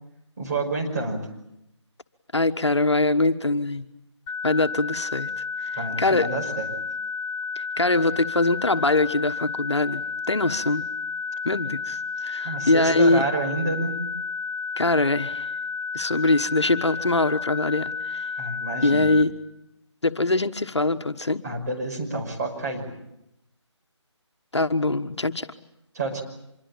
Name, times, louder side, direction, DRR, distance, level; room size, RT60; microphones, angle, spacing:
voice 1, 0.4-1.3 5.7-6.7 12.4-14.0 18.4-19.1 21.4-22.9 25.9-26.2, right 2 dB, 35° right, 0 dB, 5.7 m, -28 dB
voice 2, 2.3-3.9 4.4-5.3 6.0-6.3 7.5-10.0 10.3-10.8 11.4-13.3 14.8-15.5 15.9-18.2 18.8-19.3 20.0-21.4 24.5-25.5, left 2 dB, 65° left, 8 dB, 1.4 m, -23 dB
sound 1, 4.3-19.2, left 5 dB, 15° left, 1.9 m, -31 dB
26.0 x 22.5 x 8.8 m, 0.84 s
figure-of-eight pair, 155°, 16 cm